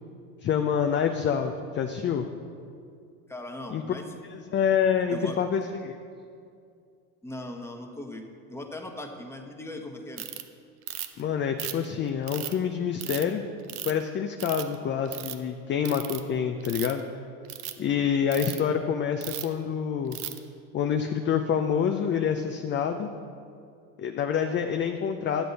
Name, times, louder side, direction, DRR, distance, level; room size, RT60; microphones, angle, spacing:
voice 1, 0.4-2.3 3.7-3.8 4.2-5.9 11.2-13.4 13.8-17.0 17.8-20.2 20.7-23.1 24.0-25.4, left 7 dB, 25° left, 5 dB, 0.5 m, -27 dB
voice 2, 3.3-4.1 5.1-5.4 7.2-10.3 18.0-18.1, left 1 dB, 5° left, 2 dB, 1.2 m, -39 dB
Ratchet pawl, 10.2-10.4 10.9-11.2 11.6-12.5 13.0-13.2 13.7-14.0 14.4-14.7 15.1-15.3 15.8-16.2 16.6-17.0 17.4-17.7 18.3-18.6 19.2-19.5 20.1-20.4, right 13 dB, 75° right, 0.8 m, -35 dB
11.5 x 7.6 x 4.1 m, 2.3 s
hypercardioid pair, 85°, 44 cm